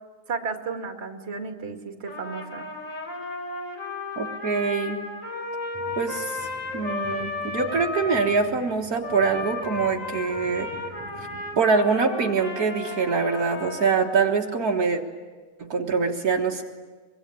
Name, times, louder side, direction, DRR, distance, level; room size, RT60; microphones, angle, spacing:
voice 1, 0.3-2.7, right 5 dB, 25° right, 4 dB, 1.4 m, -33 dB
Trumpet, 2.1-8.5 9.0-14.3, left 3 dB, 20° left, 3.9 m, -34 dB
voice 2, 4.2-5.0 6.0-6.5 6.7-10.7 11.2-11.3 11.6-15.0 15.6-16.6, right 5 dB, 65° right, 0 dB, 0.8 m, -24 dB
sound 1, 5.7-11.7, right 2 dB, ahead, 5.7 m, -46 dB
25.0 x 23.0 x 9.9 m, 1.4 s
omnidirectional pair, 4.1 m